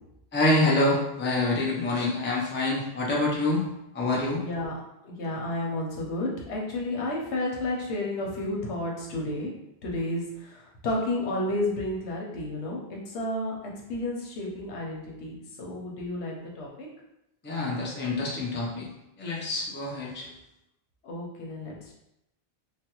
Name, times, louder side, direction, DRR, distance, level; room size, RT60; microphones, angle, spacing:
voice 1, 0.3-3.6 3.9-4.4 17.4-18.9 19.2-20.3, left 2 dB, 15° left, -3 dB, 0.4 m, -26 dB
voice 2, 4.4-4.7 5.0-9.5 9.8-16.9 21.0-21.9, left 1 dB, 90° left, -2 dB, 1.0 m, -32 dB
3.2 x 2.2 x 2.9 m, 0.85 s
omnidirectional pair, 1.1 m